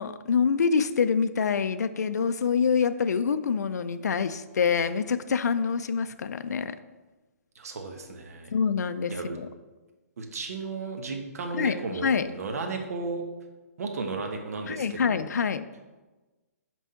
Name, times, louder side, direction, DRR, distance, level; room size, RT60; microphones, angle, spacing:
voice 1, 0.0-6.8 8.5-9.5 11.5-12.3 14.7-15.7, left 6 dB, 85° left, 11 dB, 0.4 m, -26 dB
voice 2, 7.5-8.5 9.1-9.4 10.2-13.2 13.8-15.2, right 3 dB, 65° right, 3 dB, 1.2 m, -34 dB
6.0 x 4.6 x 5.6 m, 1.2 s
hypercardioid pair, 170°, 9 cm